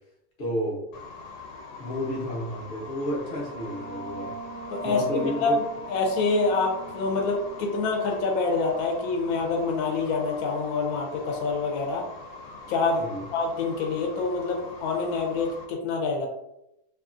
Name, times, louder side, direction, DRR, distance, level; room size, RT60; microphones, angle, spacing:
voice 1, 0.4-0.8 1.8-4.3 4.8-5.5 13.0-13.2, equal, 45° left, -3 dB, 0.9 m, -31 dB
sound 1, 0.9-15.7, left 4 dB, 90° left, 1.2 m, -43 dB
sound 2, 2.4-9.6, right 2 dB, 70° right, 0.8 m, -43 dB
voice 2, 4.7-5.5 5.9-12.1 12.7-16.3, left 4 dB, 70° left, 1 dB, 1.1 m, -26 dB
3.0 x 2.3 x 2.5 m, 0.84 s
omnidirectional pair, 1.7 m